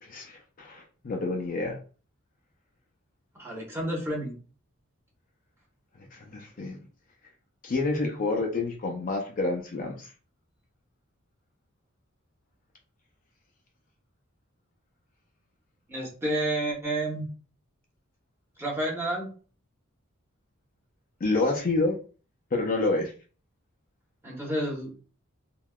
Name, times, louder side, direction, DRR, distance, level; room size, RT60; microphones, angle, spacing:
voice 1, 0.0-1.8 6.1-6.8 7.6-10.1 21.2-22.0 22.5-23.1, left 2 dB, 40° left, 1 dB, 0.4 m, -28 dB
voice 2, 3.3-4.3 15.9-17.2 18.6-19.3 24.2-25.0, right 1 dB, 10° right, -3 dB, 0.9 m, -30 dB
3.4 x 2.3 x 2.2 m, 0.37 s
head